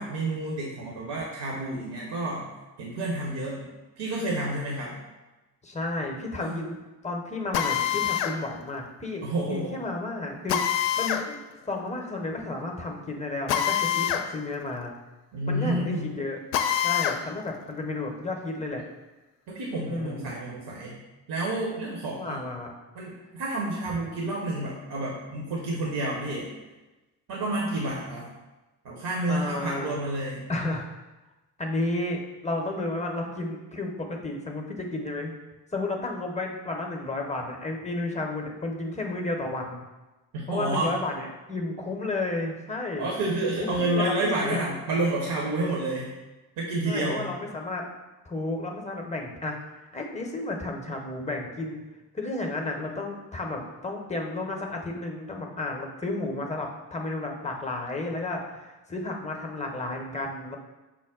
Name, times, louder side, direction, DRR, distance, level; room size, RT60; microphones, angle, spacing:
voice 1, 0.0-2.5 2.8-3.7 4.0-5.0 6.4-6.6 9.2-9.8 15.3-16.1 19.5-21.0 21.3-22.4 22.9-26.5 27.3-28.3 28.8-30.4 40.3-40.9 43.0-46.1 46.6-47.3, right 2 dB, 50° right, -3 dB, 1.1 m, -29 dB
voice 2, 5.6-6.8 7.0-11.4 11.7-14.9 15.5-16.4 16.8-18.8 19.9-20.4 22.1-22.7 29.3-30.0 30.5-30.9 31.6-35.3 35.7-39.8 40.5-43.1 43.7-44.6 46.8-47.9 48.3-49.6 49.9-51.8 52.1-60.6, left 2 dB, 15° left, 1 dB, 0.8 m, -32 dB
Drill, 7.5-8.4 10.5-11.3 13.5-14.3 14.6-14.7 16.5-17.2, left 10 dB, 65° left, 0.6 m, -25 dB
6.1 x 2.1 x 3.7 m, 1.1 s
hypercardioid pair, 50°, 49 cm